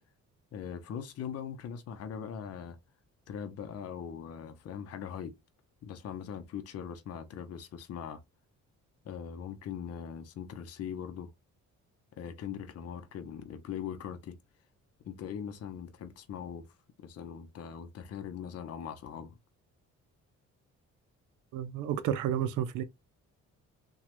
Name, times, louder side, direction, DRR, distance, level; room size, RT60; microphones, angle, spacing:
voice 1, 0.5-2.8 3.3-5.3 5.8-8.2 9.0-11.3 12.2-14.4 15.0-16.7 17.0-19.4, left 8 dB, 55° left, 0.6 m, -41 dB
voice 2, 21.5-22.8, right 10 dB, 90° right, 0.5 m, -31 dB
3.0 x 2.3 x 2.9 m
cardioid pair, 90°, 30 cm